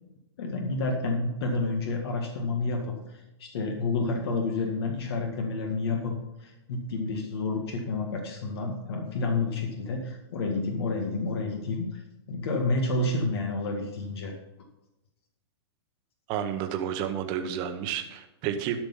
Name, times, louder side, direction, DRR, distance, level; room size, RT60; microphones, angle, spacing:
voice 1, 0.4-6.1 6.4-12.0 12.3-14.3, left 3 dB, 65° left, 2 dB, 1.9 m, -29 dB
voice 2, 16.3-18.8, right 9 dB, 35° right, 6 dB, 1.1 m, -31 dB
12.0 x 6.0 x 5.6 m, 0.97 s
hypercardioid pair, 155°, 14 cm